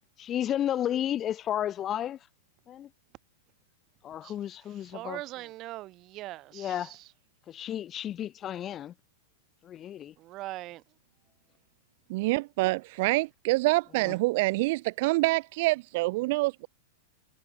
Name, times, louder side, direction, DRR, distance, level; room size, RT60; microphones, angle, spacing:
voice 1, 0.2-2.2 2.7-2.9 4.0-5.2 6.5-7.0 7.5-8.9 9.6-10.1 14.0-14.1, left 11 dB, 30° left, 0.8 m, -32 dB
voice 2, 4.9-7.0 10.2-10.8, right 17 dB, 40° right, 2.0 m, -41 dB
voice 3, 12.1-16.7, right 22 dB, 55° right, 0.4 m, -26 dB
hypercardioid pair, 130°, 0 cm